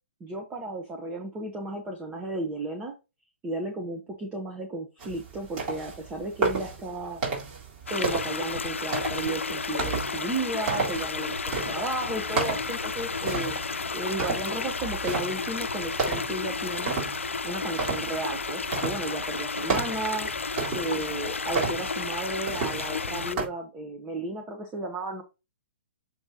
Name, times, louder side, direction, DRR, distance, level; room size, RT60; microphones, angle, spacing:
voice 1, 0.2-2.9 3.4-7.2 7.9-13.6 13.9-16.9 17.4-20.3 20.7-25.2, right 2 dB, 20° right, 3 dB, 1.2 m, -34 dB
sound 1, 5.0-23.5, right 4 dB, 40° right, 3.8 m, -33 dB
sound 2, 7.9-23.4, left 4 dB, 90° left, 0.5 m, -32 dB
7.1 x 3.4 x 4.1 m, 0.26 s
hypercardioid pair, 125°, 7 cm